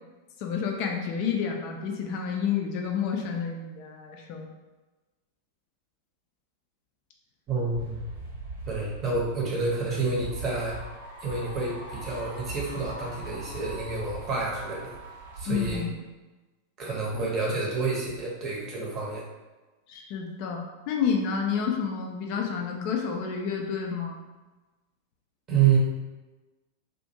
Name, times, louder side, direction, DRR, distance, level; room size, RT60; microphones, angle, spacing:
voice 1, 0.4-4.5 15.5-16.0 19.9-24.2, left 6 dB, 45° left, 2 dB, 0.3 m, -30 dB
voice 2, 7.5-8.0 8.7-10.8 11.2-15.0 15.4-15.8 16.8-19.2 25.5-25.8, right 5 dB, 30° right, -3 dB, 0.7 m, -28 dB
sound 1, 7.7-15.8, right 3 dB, 75° right, 1.0 m, -40 dB
2.4 x 2.1 x 2.6 m, 1.2 s
figure-of-eight pair, 90°, 0 cm